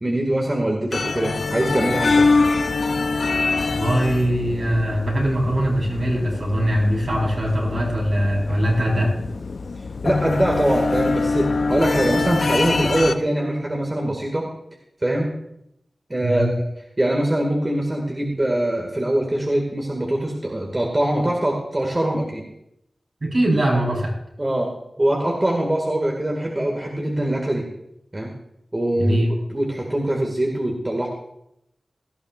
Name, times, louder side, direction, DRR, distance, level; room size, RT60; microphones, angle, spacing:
voice 1, 0.0-2.3 10.0-14.4 15.0-15.3 16.1-16.6 17.0-22.4 24.4-24.7 25.0-27.6 28.1-28.3 28.7-29.2 29.5-31.1, right 1 dB, 25° right, -1 dB, 2.1 m, -23 dB
sound 1, 0.9-13.1, left 3 dB, 75° left, 0.6 m, -24 dB
voice 2, 3.7-9.1 16.2-16.5 23.2-24.1 29.0-29.3, equal, 60° right, -2 dB, 4.5 m, -21 dB
17.5 x 13.0 x 2.5 m, 0.78 s
wide cardioid pair, 75°, 0 cm